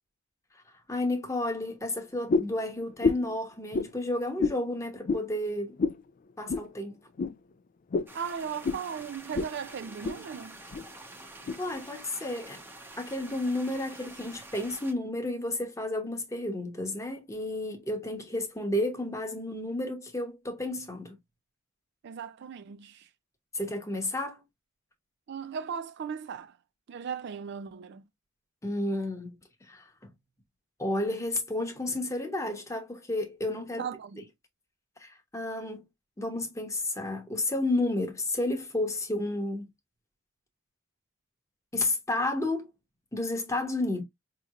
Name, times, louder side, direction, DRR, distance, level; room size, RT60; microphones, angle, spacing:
voice 1, 0.9-5.8 6.4-7.0 11.6-12.6 13.0-21.2 23.5-24.4 28.6-29.9 30.8-33.9 35.0-35.9 36.2-39.7 41.7-42.7 43.1-44.0, left 2 dB, 15° left, 0.9 m, -31 dB
sound 1, 2.3-2.6 3.0-3.3 3.7-3.9 4.4-4.6 5.1-5.3 5.8-6.0 6.5-6.7 7.2-7.3 7.9-8.1 8.6-8.8 9.3-9.5 9.8-10.2 10.7-10.9 11.5-11.6, left 4 dB, 40° left, 0.3 m, -27 dB
sound 2, 8.1-14.9, right 2 dB, 10° right, 0.7 m, -47 dB
voice 2, 8.1-10.6 22.0-23.1 25.3-26.6 26.9-28.0 33.8-34.2, right 7 dB, 55° right, 0.4 m, -37 dB
5.0 x 2.9 x 2.4 m
head